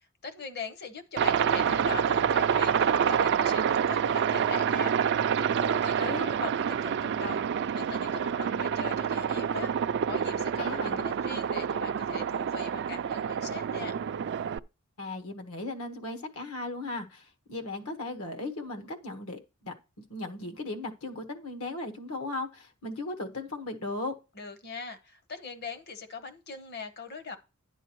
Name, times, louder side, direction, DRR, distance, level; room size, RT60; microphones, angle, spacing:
voice 1, 0.2-9.7 10.1-13.9 24.4-27.4, left 5 dB, 50° left, 1.0 m, -41 dB
Aircraft, 1.2-14.6, right 8 dB, 55° right, 0.3 m, -27 dB
voice 2, 10.6-11.1 15.0-19.7 20.1-24.1, left 2 dB, 75° left, 1.4 m, -37 dB
11.0 x 7.9 x 3.0 m
head